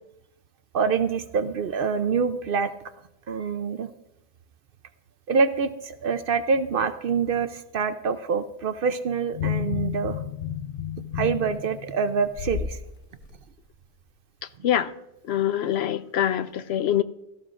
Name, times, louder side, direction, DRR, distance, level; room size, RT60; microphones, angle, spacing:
voice 1, 0.7-2.7 3.3-3.9 5.3-10.2 11.1-12.8, right 5 dB, 60° right, 0.7 m, -25 dB
sound 1, 9.3-12.8 13.2-13.4, left 9 dB, 85° left, 1.2 m, -31 dB
voice 2, 15.3-17.0, left 11 dB, 70° left, 0.8 m, -24 dB
16.5 x 14.0 x 2.5 m
omnidirectional pair, 1.2 m